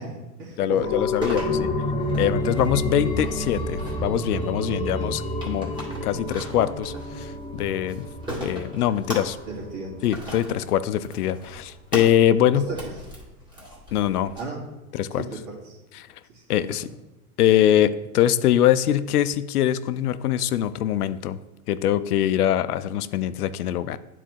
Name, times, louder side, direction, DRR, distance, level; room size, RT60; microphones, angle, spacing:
voice 1, 0.0-1.5 4.6-5.2 9.4-9.9 12.5-12.9 14.3-14.6 15.1-15.8 16.3-16.7, right 2 dB, 45° right, -2 dB, 2.6 m, -35 dB
voice 2, 0.6-1.7 2.2-5.2 5.5-5.7 6.0-8.1 8.4-9.4 10.0-12.7 13.9-14.3 14.9-15.2 16.0-16.1 16.5-16.9 17.4-21.4 21.7-24.0, left 11 dB, 90° left, 14 dB, 0.5 m, -23 dB
sound 1, 0.8-10.2 10.5-10.6, left 1 dB, 10° left, 0.8 m, -30 dB
sound 2, 1.2-14.4, equal, 10° right, 2.0 m, -39 dB
9.0 x 4.1 x 4.5 m, 1.1 s
hypercardioid pair, 130°, 44 cm